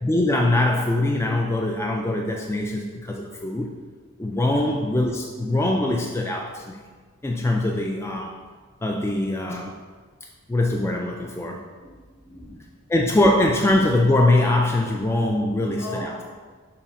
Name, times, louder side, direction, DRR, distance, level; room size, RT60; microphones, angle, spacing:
voice 1, 0.0-3.7 4.2-6.8 7.2-8.3 8.8-9.7 10.5-11.6 12.9-16.1, left 1 dB, 15° left, 0 dB, 0.3 m, -22 dB
voice 2, 11.8-12.7 15.3-16.2, left 1 dB, 65° left, -5 dB, 1.8 m, -40 dB
6.7 x 3.2 x 5.0 m, 1.5 s
head